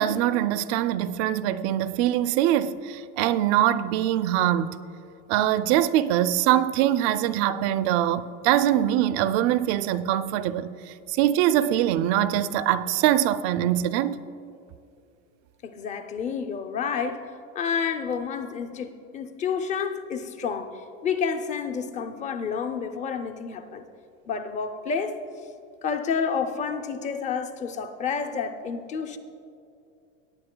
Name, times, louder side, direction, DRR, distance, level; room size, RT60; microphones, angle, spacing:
voice 1, 0.0-4.8 5.3-14.2, right 12 dB, 60° right, 0.5 m, -23 dB
voice 2, 15.6-23.8 24.3-25.2 25.8-29.2, left 6 dB, 20° left, 0.5 m, -30 dB
18.0 x 9.7 x 2.2 m
supercardioid pair, 130°, 37 cm